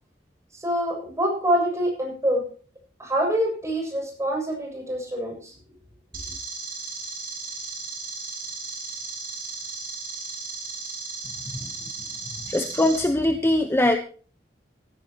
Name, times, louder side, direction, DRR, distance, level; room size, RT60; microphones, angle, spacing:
voice 1, 0.5-2.4 3.0-5.5, equal, 15° right, 1 dB, 7.3 m, -25 dB
sound 1, 6.1-13.0, right 4 dB, 55° right, 7.6 m, -35 dB
voice 2, 12.5-14.0, left 1 dB, 15° left, 6 dB, 1.0 m, -21 dB
16.0 x 15.5 x 3.0 m, 0.41 s
head